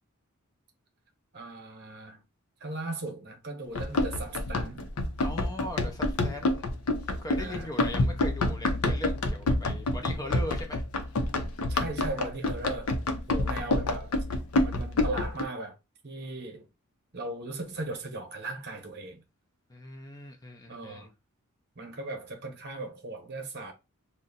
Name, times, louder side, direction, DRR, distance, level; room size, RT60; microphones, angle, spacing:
voice 1, 1.3-2.2 2.6-4.8 7.4-7.7 11.7-12.9 13.3-14.1 14.6-15.8 16.0-16.6 17.1-19.2 20.7-21.1 21.8-23.7, right 2 dB, 50° right, 0.9 m, -38 dB
Run, 3.7-15.4, left 2 dB, 85° left, 0.6 m, -28 dB
voice 2, 5.2-6.6 7.2-10.8 13.5-13.7 19.7-21.1, left 1 dB, 15° left, 0.5 m, -40 dB
2.6 x 2.1 x 3.9 m
head